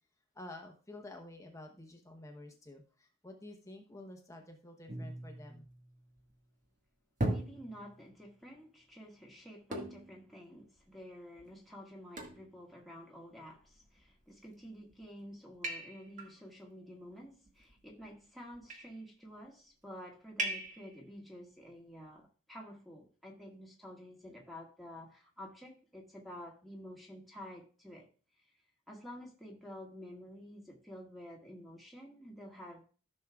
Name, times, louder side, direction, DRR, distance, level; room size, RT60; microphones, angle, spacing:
voice 1, 0.3-5.7, left 1 dB, 15° left, 0.9 m, -50 dB
sound 1, 4.9-6.3 7.2-8.2 9.7-10.2 10.8-10.9 11.4-11.5 12.2-12.5 13.6-14.1 14.7-15.1 15.6-16.3 17.5-18.1 18.5-19.0 20.4-21.0, right 1 dB, 40° right, 1.5 m, -39 dB
voice 2, 7.2-28.1 28.4-28.5 28.9-32.8, equal, ahead, 1.7 m, -50 dB
13.5 x 6.4 x 2.3 m
head